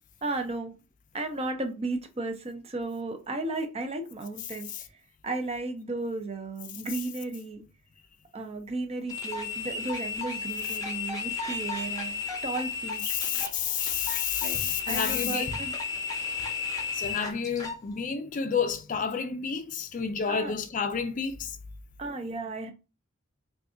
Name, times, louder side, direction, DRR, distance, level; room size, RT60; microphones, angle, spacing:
voice 1, 0.2-0.7 1.1-4.7 5.2-7.6 8.3-13.2 14.4-15.7 20.3-20.5 22.0-22.7, right 2 dB, 30° right, 0.5 m, -34 dB
sound 1, 9.1-17.8, left 5 dB, 20° left, 0.7 m, -34 dB
voice 2, 13.1-15.6 16.9-21.5, left 6 dB, 45° left, 0.4 m, -30 dB
2.6 x 2.4 x 3.7 m
head